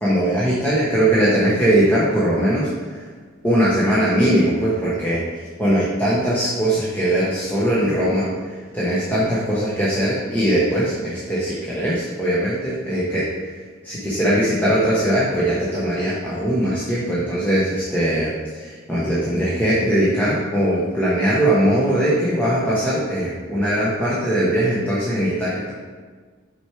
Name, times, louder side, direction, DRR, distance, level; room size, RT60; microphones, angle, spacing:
voice 1, 0.0-2.7 3.4-5.2 5.6-8.3 8.7-13.3 13.8-25.7, right 1 dB, 10° left, -9 dB, 0.9 m, -20 dB
6.1 x 4.5 x 4.8 m, 1.5 s
head